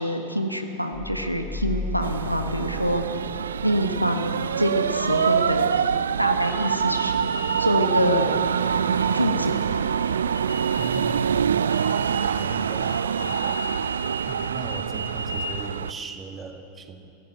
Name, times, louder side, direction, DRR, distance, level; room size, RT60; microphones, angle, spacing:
voice 1, 0.0-3.0 3.6-5.7 6.2-8.6 9.1-9.6, equal, 90° right, 6 dB, 1.2 m, -26 dB
sound 1, 0.9-3.5 3.8-3.9, left 2 dB, ahead, 2.2 m, -34 dB
sound 2, 2.0-15.9, right 7 dB, 65° right, 0.4 m, -25 dB
sound 3, 4.7-5.9 6.4-11.2 11.7-15.7, equal, 90° left, 1.5 m, -37 dB
voice 2, 10.8-11.5 12.3-13.6 14.3-17.1, right 4 dB, 20° right, 6 dB, 1.7 m, -38 dB
23.0 x 15.0 x 8.0 m, 3.0 s
figure-of-eight pair, 90°, 0 cm